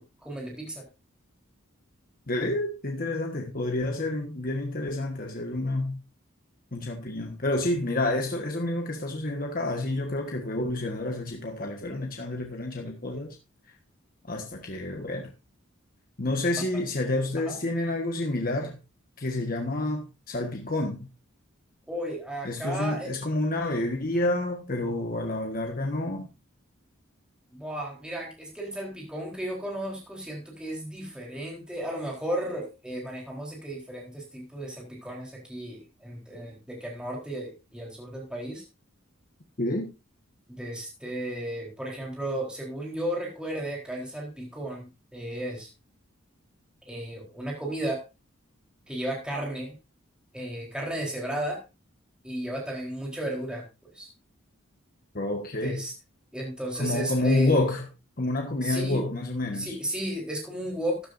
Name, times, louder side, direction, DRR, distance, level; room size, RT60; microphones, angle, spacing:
voice 1, 0.2-0.8 16.5-16.6 17.5-17.6 21.9-23.1 27.5-38.6 40.5-44.9 45.1-45.7 46.9-48.0 48.9-49.7 50.3-51.6 52.2-53.6 53.9-54.1 55.6-55.9 56.3-57.6 58.6-59.0 59.5-61.0, right 1 dB, 5° right, 4.0 m, -34 dB
voice 2, 2.3-6.0 6.7-13.4 14.3-15.3 16.2-18.8 19.2-21.1 22.4-26.3 39.6-39.9 55.1-55.8 56.8-57.9 58.2-59.7, left 2 dB, 45° left, 1.5 m, -29 dB
13.5 x 11.5 x 2.7 m
head